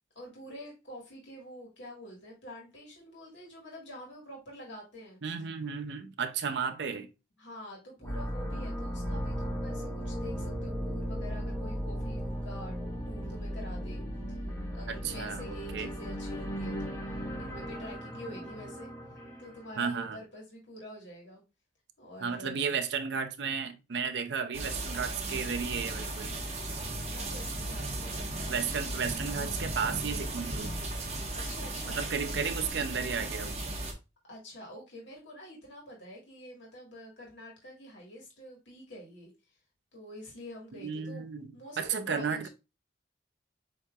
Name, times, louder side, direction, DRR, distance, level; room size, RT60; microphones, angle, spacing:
voice 1, 0.2-5.2 7.4-12.8 13.1-14.0 14.3-14.4 14.7-17.0 17.4-18.9 19.4-21.4 22.0-22.6 27.1-28.5 31.3-32.0 34.3-39.3 39.9-42.5, equal, 85° left, 1.7 m, -47 dB
voice 2, 5.2-7.1 14.9-15.9 19.8-20.2 22.2-26.3 28.5-30.7 31.9-33.6 40.8-42.5, right 6 dB, 70° right, 0.5 m, -33 dB
sound 1, 8.0-19.9, equal, 15° left, 0.9 m, -36 dB
sound 2, 24.5-33.9, right 2 dB, 35° right, 0.9 m, -36 dB
7.6 x 2.8 x 2.3 m
head